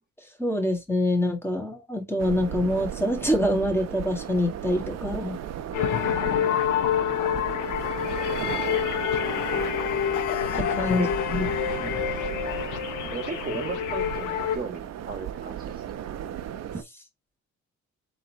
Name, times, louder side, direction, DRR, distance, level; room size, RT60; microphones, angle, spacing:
voice 1, 0.4-5.4 10.7-11.1 11.3-11.5, left 1 dB, 10° left, 1.9 m, -25 dB
sound 1, 2.2-16.8, right 10 dB, 60° right, 0.7 m, -35 dB
sound 2, 5.7-14.6, left 9 dB, 85° left, 0.8 m, -27 dB
voice 2, 5.7-6.1 10.5-11.3 11.8-12.1 13.1-16.0, right 4 dB, 30° right, 1.3 m, -37 dB
3.8 x 3.0 x 4.5 m
cardioid pair, 90°, 30 cm